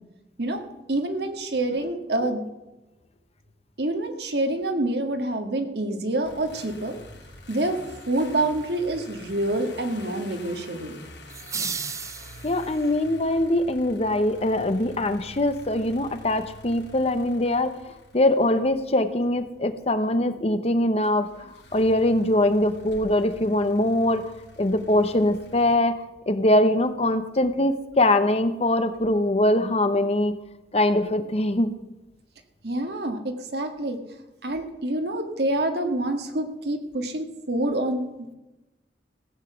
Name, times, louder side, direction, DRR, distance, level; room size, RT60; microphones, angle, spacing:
voice 1, 0.9-2.4 3.8-7.0 7.5-7.8 8.1-11.0 32.6-34.0 34.4-38.4, right 1 dB, 65° right, 5 dB, 1.9 m, -27 dB
sound 1, 6.2-19.3 21.0-25.8, left 2 dB, 75° left, 2.5 m, -47 dB
sound 2, 11.3-12.9, right 5 dB, 20° right, 0.6 m, -33 dB
voice 2, 12.4-17.7 18.1-24.3 24.6-25.9 26.3-30.4 30.7-31.7, left 1 dB, 35° left, 10 dB, 0.9 m, -22 dB
16.5 x 8.3 x 7.0 m, 1.0 s
head